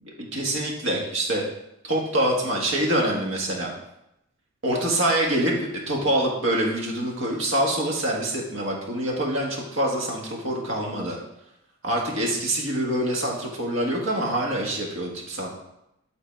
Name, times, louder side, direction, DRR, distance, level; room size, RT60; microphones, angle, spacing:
voice 1, 0.0-1.5 1.8-3.7 4.6-11.2 11.8-15.5, right 1 dB, 65° right, -1 dB, 1.5 m, -25 dB
7.6 x 4.0 x 4.5 m, 0.85 s
head